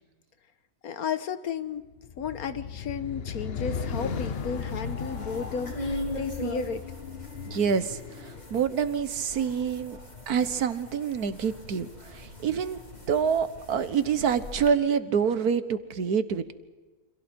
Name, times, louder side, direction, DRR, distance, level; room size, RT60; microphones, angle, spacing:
voice 1, 0.8-1.9 2.2-6.8, left 6 dB, 75° left, 12 dB, 1.6 m, -33 dB
sound 1, 2.0-8.5, left 6 dB, 50° left, 1.0 m, -36 dB
sound 2, 3.7-14.7, left 1 dB, 25° left, 3.8 m, -41 dB
voice 2, 7.4-10.0 10.3-12.8 13.1-16.5, right 7 dB, 85° right, 12 dB, 1.7 m, -27 dB
29.0 x 26.5 x 4.5 m, 1.3 s
omnidirectional pair, 1.6 m